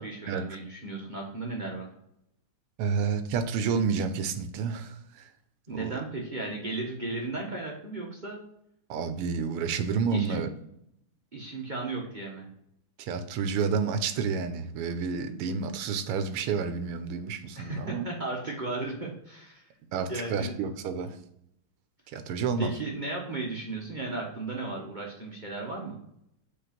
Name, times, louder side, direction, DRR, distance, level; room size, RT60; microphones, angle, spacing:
voice 1, 0.0-1.9 5.7-8.4 10.1-10.4 11.3-12.5 17.6-19.6 20.1-20.6 22.6-26.0, right 2 dB, 35° right, -2 dB, 0.8 m, -35 dB
voice 2, 2.8-5.3 5.7-6.0 8.9-10.5 13.0-18.1 19.9-21.2 22.1-22.7, right 5 dB, 90° right, 9 dB, 1.6 m, -30 dB
5.1 x 4.2 x 5.7 m, 0.77 s
omnidirectional pair, 2.4 m